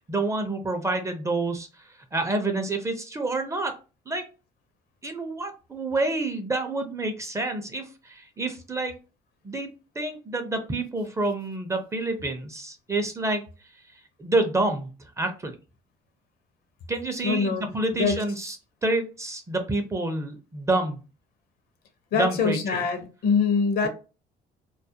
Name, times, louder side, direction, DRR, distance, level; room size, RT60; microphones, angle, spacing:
voice 1, 0.1-3.7 4.1-4.2 5.0-8.9 9.4-9.7 10.0-13.4 14.2-15.6 16.9-18.6 18.8-21.0 22.1-22.9, right 2 dB, 15° right, 5 dB, 0.5 m, -28 dB
voice 2, 17.2-18.2 22.1-23.9, left 5 dB, 65° left, 7 dB, 0.6 m, -24 dB
2.3 x 2.0 x 2.7 m, 0.32 s
cardioid pair, 110°, 17 cm